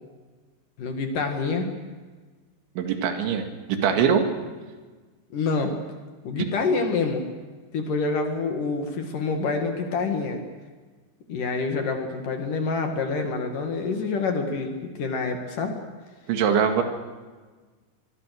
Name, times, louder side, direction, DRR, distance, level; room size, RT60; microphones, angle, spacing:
voice 1, 0.8-1.7 5.3-5.8 6.2-7.2 7.7-10.4 11.3-15.8, left 4 dB, 55° left, 4 dB, 3.0 m, -27 dB
voice 2, 2.8-4.3 16.3-16.8, right 7 dB, 90° right, 5 dB, 4.3 m, -22 dB
24.5 x 23.0 x 6.5 m, 1.4 s
omnidirectional pair, 5.2 m